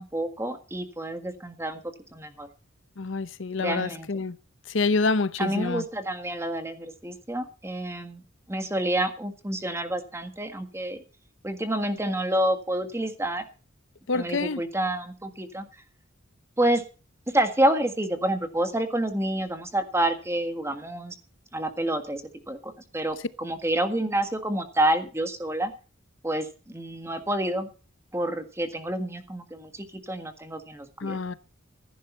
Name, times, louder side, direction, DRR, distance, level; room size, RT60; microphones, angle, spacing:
voice 1, 0.0-1.8 2.1-2.5 3.6-4.1 5.4-8.2 8.5-11.0 11.4-13.4 14.1-15.6 16.6-16.8 17.3-21.1 21.5-22.2 22.5-25.7 26.2-27.7 28.1-31.2, right 1 dB, 15° right, 1.6 m, -28 dB
voice 2, 3.0-4.4 4.7-5.8 14.1-14.6 31.0-31.3, left 3 dB, 65° left, 0.8 m, -27 dB
15.0 x 10.5 x 5.5 m
head